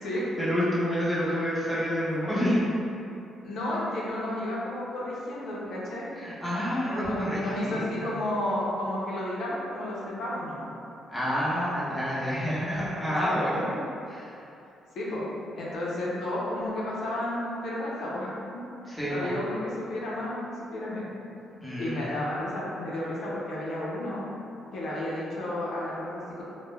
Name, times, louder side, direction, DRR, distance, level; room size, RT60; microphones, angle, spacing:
voice 1, 0.4-2.6 6.2-8.1 11.1-14.4 18.9-19.3 21.6-22.3, equal, 5° left, -10 dB, 0.8 m, -29 dB
voice 2, 3.4-6.1 7.0-10.7 13.0-13.4 15.0-15.2 15.6-18.6 19.1-21.0 21.8-24.2 24.7-26.4, left 1 dB, 75° left, -7 dB, 0.5 m, -32 dB
2.2 x 2.1 x 3.0 m, 2.7 s
cardioid pair, 90°, 0 cm